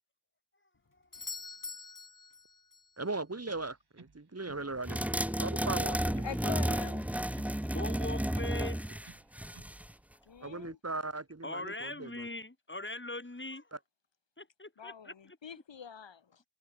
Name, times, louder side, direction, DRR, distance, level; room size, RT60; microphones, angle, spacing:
Doorbell, 1.1-3.0 7.0-7.1, left 4 dB, 45° left, 2.9 m, -45 dB
voice 1, 3.0-6.6 10.4-12.3 13.7-13.8, right 3 dB, 35° right, 4.0 m, -39 dB
sound 1, 3.4-4.7 5.0-6.4 6.7-8.1 8.4-9.8, right 4 dB, 65° right, 6.6 m, -57 dB
sound 2, 4.9-9.9, equal, 5° right, 0.9 m, -32 dB
voice 2, 6.2-7.1 10.2-10.8 14.8-16.4, left 7 dB, 90° left, 3.3 m, -44 dB
voice 3, 7.7-8.8 11.4-13.7 14.4-15.1, left 2 dB, 25° left, 6.8 m, -41 dB
open air
cardioid pair, 45°, 43 cm